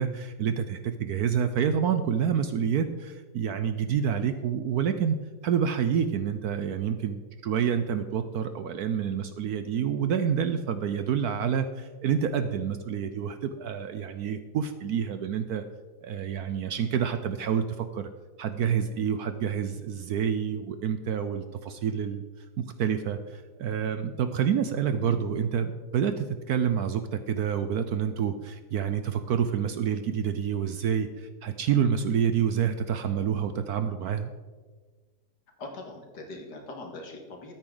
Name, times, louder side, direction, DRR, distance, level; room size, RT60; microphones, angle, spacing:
voice 1, 0.0-5.2 5.4-15.6 16.0-18.1 18.4-22.2 22.6-34.3, right 8 dB, 70° right, 9 dB, 1.0 m, -28 dB
voice 2, 35.6-37.5, left 2 dB, 65° left, 2 dB, 2.3 m, -41 dB
13.5 x 9.6 x 3.9 m, 1.4 s
omnidirectional pair, 2.0 m